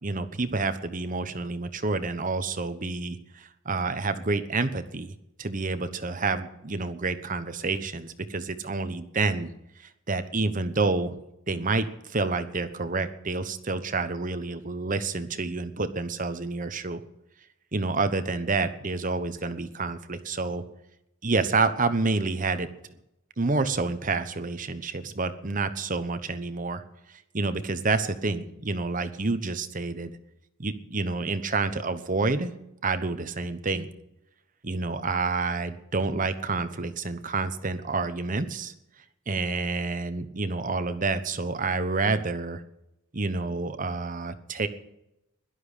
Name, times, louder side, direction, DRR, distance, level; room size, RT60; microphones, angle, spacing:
voice 1, 0.0-5.1 5.4-9.5 9.8-11.1 11.5-17.0 17.7-20.6 21.2-22.7 23.4-26.8 27.3-30.1 30.6-32.5 32.8-33.9 34.6-38.7 39.3-42.6 43.1-44.7, right 3 dB, 40° right, 10 dB, 1.1 m, -28 dB
17.0 x 12.0 x 5.0 m, 0.87 s
head